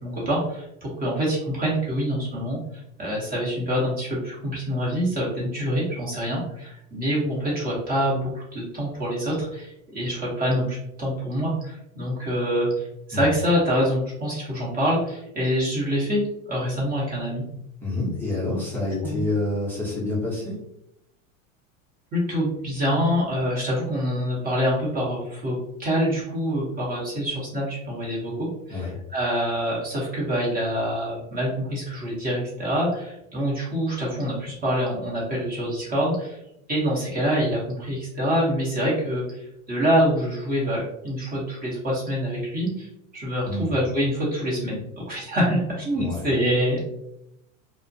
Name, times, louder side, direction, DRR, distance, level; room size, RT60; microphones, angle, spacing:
voice 1, 0.0-16.2 16.5-17.4 19.0-19.2 22.1-28.8 29.1-36.4 36.7-42.9 43.1-46.9, equal, 20° right, -5 dB, 0.8 m, -26 dB
voice 2, 17.8-20.6 28.7-29.0 43.5-43.7 45.9-46.3, left 2 dB, 5° left, -8 dB, 0.6 m, -28 dB
2.4 x 2.1 x 2.6 m, 0.80 s
supercardioid pair, 135°, 40 cm